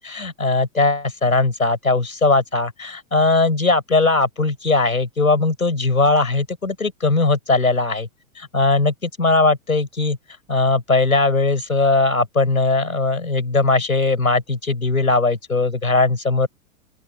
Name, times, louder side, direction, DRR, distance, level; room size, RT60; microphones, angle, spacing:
voice 1, 0.0-8.1 8.4-10.2 10.5-16.5, left 3 dB, 85° left, 6.7 m, -19 dB
open air
figure-of-eight pair, 95°, 41 cm